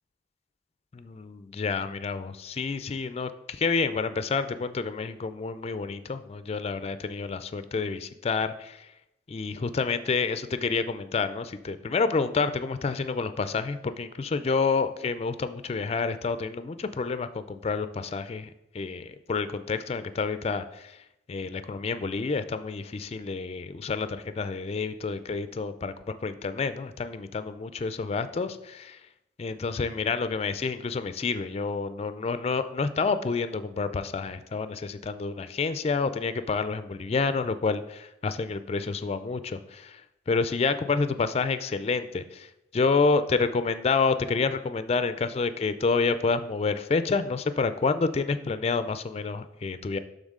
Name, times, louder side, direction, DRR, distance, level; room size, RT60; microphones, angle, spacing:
voice 1, 0.9-8.9 9.3-21.0 21.3-25.9 26.2-29.0 29.4-40.0 40.3-50.0, left 4 dB, 35° left, 12 dB, 0.3 m, -29 dB
11.5 x 3.9 x 3.7 m, 0.87 s
head